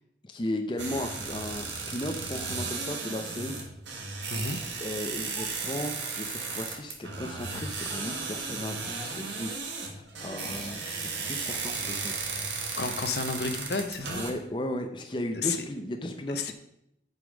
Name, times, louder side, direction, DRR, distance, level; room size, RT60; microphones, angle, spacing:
voice 1, 0.2-3.5 4.8-9.5 9.9-12.1 14.1-16.5, left 1 dB, 25° left, 5 dB, 0.6 m, -35 dB
sound 1, 0.8-14.3, right 4 dB, 85° right, 1.6 m, -35 dB
sound 2, 2.2-3.1 4.4-4.5 4.8-4.9 5.3-5.6 6.2-6.4 6.7-6.9 7.3-7.4 7.9-8.4 8.7-10.9 11.6-12.2, equal, 5° left, 1.8 m, -48 dB
voice 2, 12.8-14.2 15.3-15.6 16.3-16.5, left 4 dB, 65° left, 8 dB, 0.8 m, -31 dB
8.1 x 5.4 x 5.1 m, 0.78 s
head